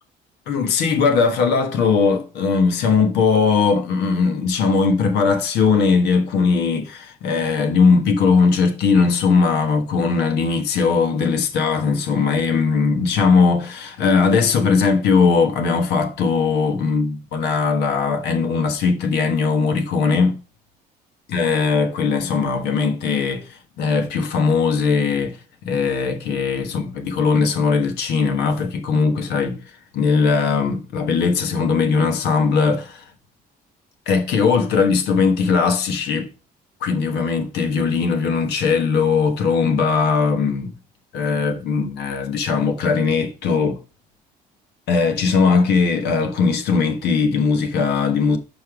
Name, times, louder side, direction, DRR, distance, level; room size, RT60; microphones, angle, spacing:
voice 1, 0.5-20.4 21.3-25.4 25.6-29.6 29.9-33.0 34.1-36.3 36.8-40.7 41.1-43.8 44.9-48.4, left 5 dB, 80° left, 1.3 m, -19 dB
5.5 x 5.3 x 4.8 m
cardioid pair, 110°, 17 cm